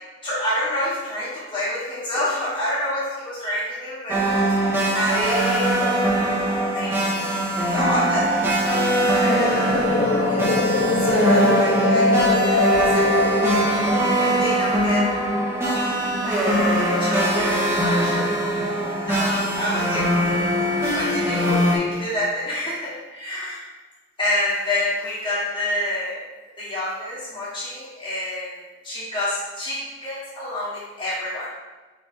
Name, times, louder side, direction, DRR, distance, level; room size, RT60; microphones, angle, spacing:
voice 1, 0.2-4.2 4.5-5.7 6.7-7.0 7.7-10.5 11.0-13.6 14.2-15.1 15.6-18.4 19.1-20.5 20.9-23.6 24.2-26.3 26.6-31.5, left 1 dB, 30° left, -12 dB, 1.5 m, -28 dB
sound 1, 4.1-21.8, right 1 dB, 15° right, 1.3 m, -21 dB
sound 2, 9.3-15.1, left 3 dB, 45° left, 0.3 m, -23 dB
4.9 x 4.2 x 4.9 m, 1.2 s
head